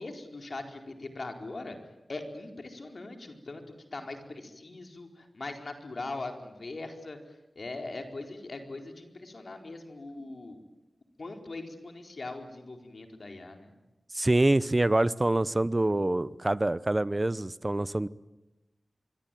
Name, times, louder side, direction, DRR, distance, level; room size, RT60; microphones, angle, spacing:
voice 1, 0.0-1.8 2.1-3.6 3.9-7.2 7.5-10.6 11.2-13.7, left 2 dB, 60° left, 4 dB, 4.4 m, -40 dB
voice 2, 14.1-18.1, right 2 dB, 25° right, 17 dB, 0.9 m, -25 dB
25.5 x 23.5 x 9.2 m, 1.0 s
wide cardioid pair, 70°, 0 cm